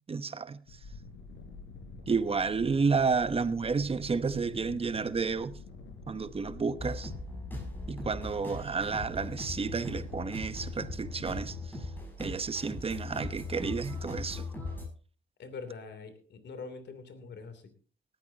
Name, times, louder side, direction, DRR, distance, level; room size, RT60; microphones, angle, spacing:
voice 1, 0.1-0.6 2.1-5.6 6.1-7.1 7.9-11.6 12.2-14.4, right 5 dB, 30° right, 0.9 m, -31 dB
sound 1, 0.7-11.7, left 3 dB, 85° left, 5.0 m, -47 dB
sound 2, 6.8-14.9, left 2 dB, 10° left, 6.9 m, -39 dB
voice 2, 15.4-17.7, left 4 dB, 60° left, 3.0 m, -44 dB
18.5 x 13.5 x 2.8 m
cardioid pair, 90°, 20 cm